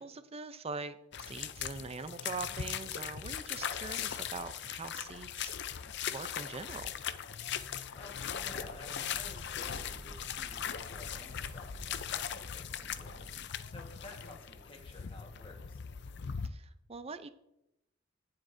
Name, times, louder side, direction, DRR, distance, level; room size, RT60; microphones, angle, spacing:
voice 1, 0.0-5.5 6.1-7.0 16.4-17.3, right 4 dB, 30° right, 11 dB, 0.5 m, -43 dB
sound 1, 1.1-16.5, left 8 dB, 55° left, 0.5 m, -39 dB
voice 2, 7.9-13.2 13.7-15.8, left 2 dB, 25° left, 1 dB, 1.4 m, -53 dB
sound 2, 8.1-13.5, right 2 dB, 80° right, 1.0 m, -53 dB
18.5 x 7.7 x 2.7 m, 0.87 s
head